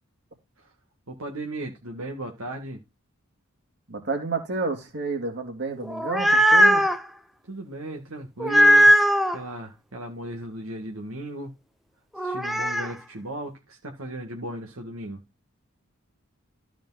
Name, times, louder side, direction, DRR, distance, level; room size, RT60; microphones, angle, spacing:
voice 1, 1.1-2.8 7.5-8.9 9.3-11.5 12.2-15.2, right 1 dB, 80° right, 1.8 m, -36 dB
voice 2, 3.9-6.8, right 3 dB, 55° right, 2.8 m, -30 dB
sound 1, 5.8-7.0 8.4-9.4 12.2-12.9, equal, ahead, 0.6 m, -18 dB
13.5 x 5.0 x 4.0 m
head